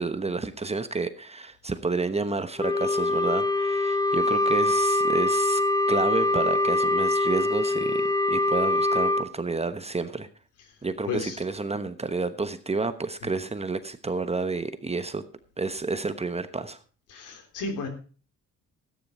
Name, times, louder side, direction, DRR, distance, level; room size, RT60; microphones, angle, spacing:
voice 1, 0.0-5.6 5.9-10.3 10.8-15.2 15.6-16.8, right 3 dB, 20° right, 11 dB, 1.1 m, -30 dB
Wind instrument woodwind instrument, 2.6-9.3, left 2 dB, 10° left, 0.8 m, -24 dB
voice 2, 11.1-11.4 17.1-17.9, left 4 dB, 85° left, 6 dB, 3.3 m, -32 dB
13.5 x 9.9 x 4.3 m, 0.38 s
cardioid pair, 90°, 30 cm